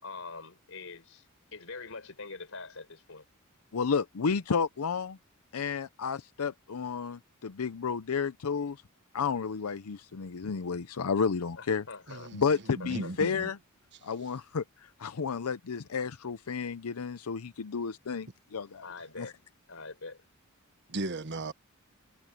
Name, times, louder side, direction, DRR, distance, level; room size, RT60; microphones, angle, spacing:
voice 1, 0.0-1.3 1.5-3.2 11.6-12.3 12.8-13.1 18.8-19.3 19.7-20.2, left 4 dB, 65° left, 4.8 m, -44 dB
voice 2, 3.7-5.2 5.5-8.8 9.1-13.6 14.0-18.8 19.2-19.3, left 5 dB, 85° left, 0.6 m, -32 dB
voice 3, 12.1-12.4 12.8-13.5 20.9-21.5, right 2 dB, 55° right, 1.3 m, -36 dB
head